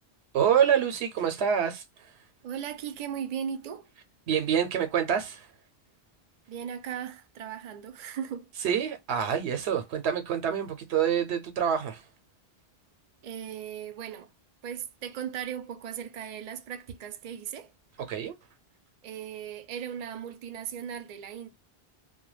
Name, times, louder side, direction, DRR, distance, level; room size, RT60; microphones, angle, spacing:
voice 1, 0.3-2.1 4.3-5.5 8.6-12.0 18.0-18.4, right 8 dB, 85° right, 0.9 m, -26 dB
voice 2, 2.4-3.9 6.5-8.5 13.2-14.3 14.6-17.7 19.0-21.5, right 8 dB, 55° right, 0.5 m, -37 dB
2.2 x 2.2 x 3.0 m
omnidirectional pair, 1.1 m